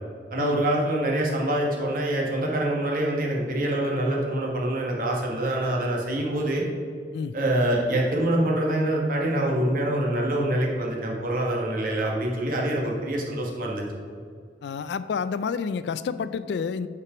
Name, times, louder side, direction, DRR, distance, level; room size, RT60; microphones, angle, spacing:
voice 1, 0.3-6.6 7.3-13.8, right 1 dB, 50° right, -1 dB, 1.4 m, -25 dB
voice 2, 14.6-16.9, left 6 dB, 70° left, 14 dB, 0.3 m, -29 dB
5.9 x 4.6 x 6.0 m, 2.1 s
head